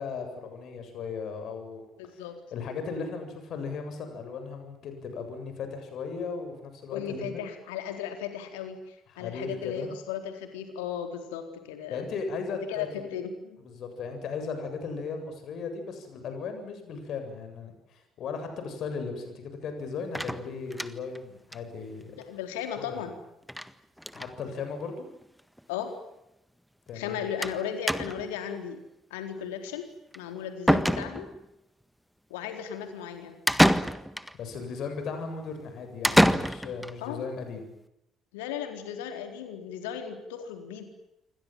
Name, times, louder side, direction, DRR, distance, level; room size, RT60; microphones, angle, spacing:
voice 1, 0.0-1.8 2.5-7.5 9.1-9.9 11.9-12.9 13.6-22.2 22.8-23.1 24.1-25.1 26.9-27.3 34.3-37.7, left 5 dB, 55° left, 7 dB, 7.7 m, -36 dB
voice 2, 2.0-2.4 6.9-12.1 12.7-13.6 22.3-23.2 25.7-25.9 26.9-28.8 29.1-29.9 30.1-31.3 32.3-33.4 37.0-37.2 38.3-40.8, left 8 dB, 70° left, 6 dB, 4.1 m, -36 dB
sound 1, 20.1-21.2 21.5-21.6 21.9-22.0 22.2-22.3 23.5-23.7 24.0-24.3 25.2-25.3 25.6-25.7 27.4-27.6 27.9-28.3 30.1-30.2 30.7-31.4 33.5-34.3 36.0-36.9, equal, ahead, 1.6 m, -25 dB
28.0 x 24.5 x 7.6 m, 0.85 s
figure-of-eight pair, 50°, 0 cm